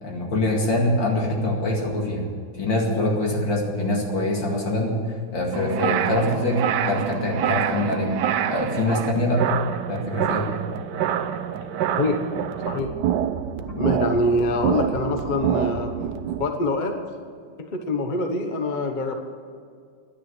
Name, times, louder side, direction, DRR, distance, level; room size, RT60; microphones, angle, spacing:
voice 1, 0.0-2.3 2.6-5.0 5.3-8.1 8.5-9.4 9.9-10.4, left 1 dB, 70° left, -1 dB, 2.9 m, -24 dB
sound 1, 5.5-16.4, right 9 dB, 70° right, 1.1 m, -26 dB
voice 2, 13.8-15.9 16.4-17.0 17.7-19.2, left 2 dB, 30° left, 5 dB, 0.9 m, -24 dB
10.5 x 9.6 x 9.7 m, 2.2 s
omnidirectional pair, 2.1 m